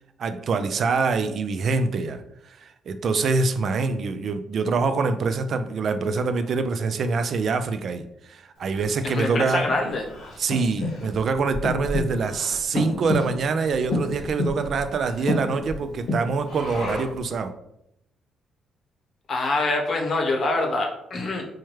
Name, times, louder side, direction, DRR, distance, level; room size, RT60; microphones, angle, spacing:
voice 1, 0.2-2.2 2.6-9.7 10.4-17.5, right 4 dB, 60° right, 9 dB, 0.3 m, -25 dB
Breathing, 8.8-17.3, left 1 dB, 85° left, 1.2 m, -30 dB
voice 2, 9.0-10.0 19.3-21.4, left 2 dB, 50° left, 1 dB, 0.8 m, -25 dB
4.4 x 2.2 x 3.1 m, 0.79 s
cardioid pair, 90°, 0 cm